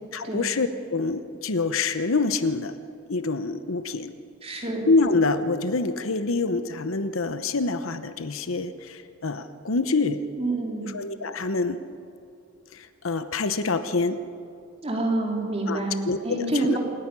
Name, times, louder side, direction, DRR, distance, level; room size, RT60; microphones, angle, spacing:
voice 1, 0.1-2.8 3.1-4.1 4.9-10.2 10.8-11.8 12.7-14.2 15.7-16.8, left 3 dB, 75° left, 11 dB, 0.9 m, -26 dB
voice 2, 4.4-4.9 10.4-10.9 14.8-16.8, right 2 dB, 30° right, 0 dB, 3.3 m, -27 dB
26.5 x 11.0 x 9.8 m, 2.5 s
head